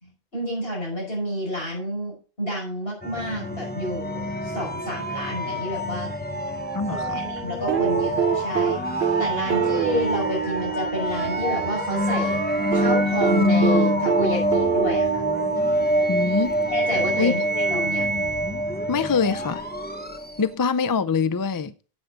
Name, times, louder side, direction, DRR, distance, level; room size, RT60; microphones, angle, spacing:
voice 1, 0.0-6.1 6.8-12.4 12.7-15.3 16.7-17.4 17.7-18.2, left 1 dB, 65° left, 5.7 m, -30 dB
sound 1, 3.0-20.5, equal, 10° left, 0.9 m, -25 dB
voice 2, 6.7-7.2 16.1-16.6 17.2-17.5 18.9-19.7 20.4-21.7, left 5 dB, 35° left, 0.3 m, -24 dB
sound 2, 7.7-11.8 12.7-16.3 17.7-17.8, right 8 dB, 85° right, 1.0 m, -26 dB
10.0 x 8.0 x 3.7 m
omnidirectional pair, 1.1 m